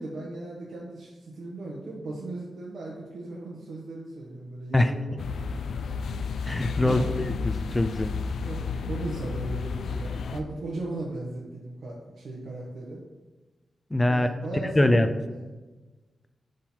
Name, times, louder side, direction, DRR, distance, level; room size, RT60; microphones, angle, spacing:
voice 1, 0.0-5.7 6.8-7.2 8.4-13.0 14.0-15.5, right 2 dB, 60° right, -5 dB, 1.3 m, -37 dB
sound 1, 5.2-10.4, left 5 dB, 85° left, 0.4 m, -32 dB
voice 2, 6.5-8.1 13.9-14.3 14.8-15.1, left 1 dB, 10° left, 9 dB, 0.4 m, -23 dB
11.0 x 3.9 x 4.5 m, 1.2 s
wide cardioid pair, 175°, 0 cm